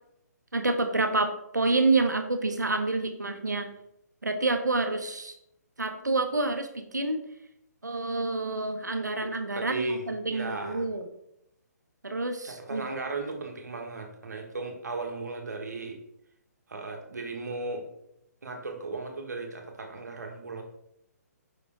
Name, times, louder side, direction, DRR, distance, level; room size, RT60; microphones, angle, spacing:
voice 1, 0.5-3.7 4.2-5.3 5.8-7.2 7.8-11.0 12.0-12.8, right 3 dB, 85° right, 7 dB, 1.0 m, -28 dB
voice 2, 9.2-10.8 12.4-16.0 16.7-17.8 18.4-20.6, right 3 dB, 70° right, 3 dB, 1.5 m, -36 dB
5.8 x 5.0 x 3.6 m, 0.79 s
figure-of-eight pair, 140°, 9 cm